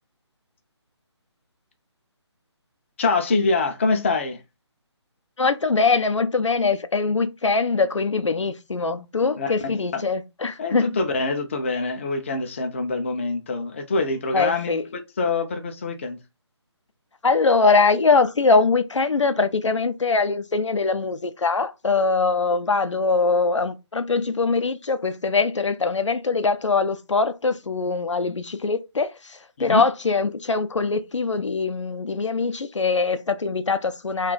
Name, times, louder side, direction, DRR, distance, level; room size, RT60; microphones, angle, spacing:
voice 1, 3.0-4.4 9.4-10.0 10.6-16.2 29.6-29.8, left 3 dB, 25° left, 0.4 m, -25 dB
voice 2, 5.4-11.0 14.3-14.8 17.2-34.3, left 4 dB, 85° left, 0.5 m, -22 dB
2.3 x 2.2 x 3.8 m
figure-of-eight pair, 150°, 15 cm